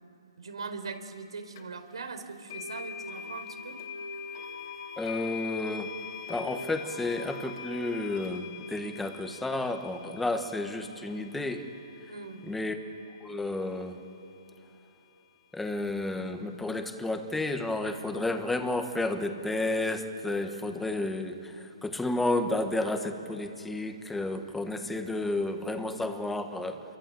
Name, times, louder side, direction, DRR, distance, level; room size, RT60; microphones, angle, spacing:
voice 1, 0.4-3.8 12.1-12.4, right 4 dB, 90° right, 6 dB, 4.2 m, -40 dB
sound 1, 1.5-1.6 2.5-13.5, left 5 dB, 45° left, 3.1 m, -42 dB
voice 2, 5.0-5.9 6.3-11.7 12.4-12.8 13.2-13.9 15.5-26.8, left 2 dB, 5° left, 6 dB, 1.4 m, -31 dB
28.0 x 23.5 x 7.8 m, 2.9 s
hypercardioid pair, 165°, 3 cm